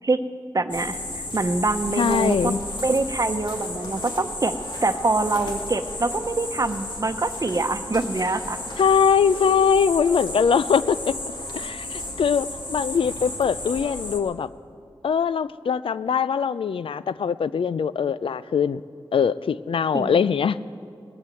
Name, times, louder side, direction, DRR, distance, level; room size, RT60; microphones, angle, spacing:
voice 1, 0.5-4.5 4.8-8.6 19.9-20.2, right 3 dB, 40° right, 9 dB, 0.9 m, -25 dB
sound 1, 0.7-14.2, left 1 dB, 60° left, 2.0 m, -33 dB
voice 2, 2.0-2.6 8.8-11.2 11.5-14.5 15.0-18.8 19.1-20.6, left 6 dB, 80° left, 16 dB, 0.4 m, -22 dB
19.0 x 8.9 x 7.6 m, 2.3 s
cardioid pair, 50°, 9 cm